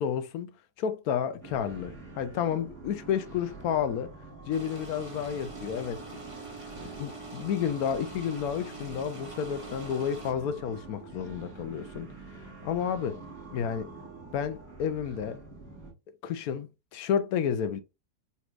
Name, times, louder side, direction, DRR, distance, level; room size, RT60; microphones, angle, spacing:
voice 1, 0.0-4.1 4.5-6.0 6.8-12.1 12.6-13.2 13.5-13.9 14.3-15.4 16.2-17.8, left 8 dB, 75° left, 1.0 m, -31 dB
sound 1, 1.4-15.9, right 3 dB, 10° left, 2.8 m, -46 dB
sound 2, 4.5-10.3, right 4 dB, 25° right, 0.9 m, -44 dB
4.6 x 4.2 x 2.4 m
omnidirectional pair, 1.7 m